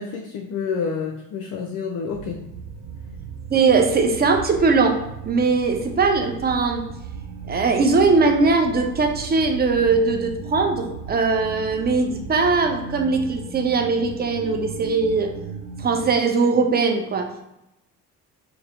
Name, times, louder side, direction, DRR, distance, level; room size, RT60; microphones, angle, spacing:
voice 1, 0.0-2.4, left 5 dB, 45° left, 2 dB, 0.6 m, -28 dB
sound 1, 2.1-16.1, right 5 dB, 70° right, 0.8 m, -36 dB
voice 2, 3.5-5.0 5.2-6.8 7.5-15.3 15.8-17.3, right 4 dB, 20° right, 4 dB, 0.6 m, -20 dB
4.1 x 2.2 x 3.8 m, 0.88 s
figure-of-eight pair, 45°, 47 cm